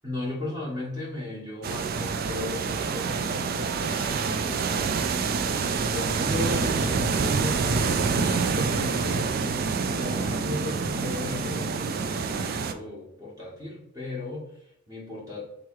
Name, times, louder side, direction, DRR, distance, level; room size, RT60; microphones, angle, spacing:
voice 1, 0.0-5.2 5.7-15.5, left 2 dB, 15° right, -6 dB, 1.1 m, -36 dB
sound 1, 1.6-12.7, right 5 dB, 45° right, 0.3 m, -27 dB
3.6 x 3.1 x 4.6 m, 0.76 s
head